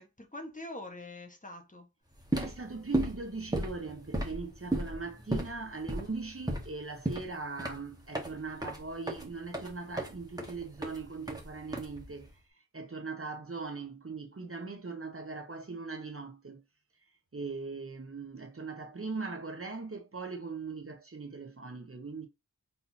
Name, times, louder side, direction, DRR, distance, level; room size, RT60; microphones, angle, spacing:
voice 1, 0.0-1.9 5.3-5.5, left 1 dB, 20° left, 1.4 m, -44 dB
sound 1, 2.1-12.3, right 1 dB, 10° right, 1.5 m, -35 dB
voice 2, 2.3-12.3 12.7-16.6 17.3-22.3, right 4 dB, 35° right, 1.0 m, -40 dB
4.1 x 3.8 x 2.8 m
cardioid pair, 45°, 38 cm